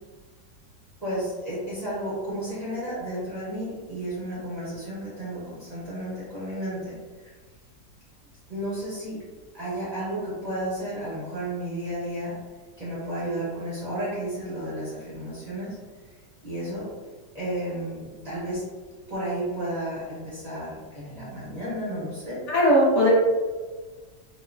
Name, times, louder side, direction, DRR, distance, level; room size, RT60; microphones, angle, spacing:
voice 1, 1.0-7.3 8.5-9.2 9.5-12.4 12.8-15.8 16.4-16.9 17.3-18.6 19.1-22.4, right 1 dB, 40° right, -10 dB, 0.6 m, -32 dB
voice 2, 22.5-23.1, equal, 60° left, -5 dB, 0.8 m, -18 dB
2.9 x 2.1 x 2.4 m, 1.4 s
omnidirectional pair, 1.8 m